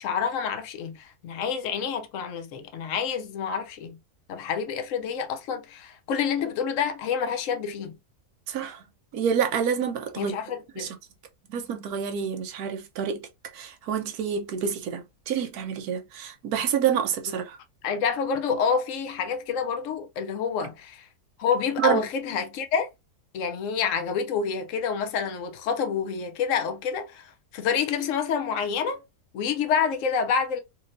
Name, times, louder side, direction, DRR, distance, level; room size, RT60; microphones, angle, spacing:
voice 1, 0.0-4.0 4.3-8.0 10.2-10.9 17.8-21.1 21.4-22.9 23.3-29.0 29.3-30.6, left 6 dB, 60° left, 1.0 m, -28 dB
voice 2, 8.5-8.8 9.1-10.3 10.8-10.9 11.5-13.2 13.5-17.6 21.8-22.0, right 8 dB, 70° right, 1.2 m, -28 dB
4.3 x 3.0 x 2.6 m
omnidirectional pair, 1.7 m